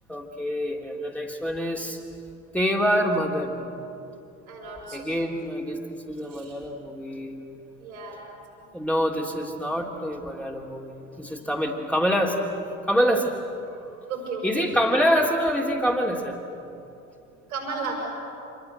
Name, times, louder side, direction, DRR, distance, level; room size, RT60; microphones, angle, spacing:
voice 1, 0.1-2.0 2.5-3.6 4.9-7.4 8.7-12.4 12.9-13.4 14.4-16.4, equal, 5° left, -1 dB, 3.2 m, -26 dB
voice 2, 4.5-5.1 6.2-6.5 7.8-8.3 9.7-9.8 11.3-11.5 13.7-14.7 17.5-17.9, right 4 dB, 75° right, 1 dB, 6.1 m, -35 dB
27.5 x 22.0 x 8.0 m, 2.8 s
figure-of-eight pair, 50°, 43 cm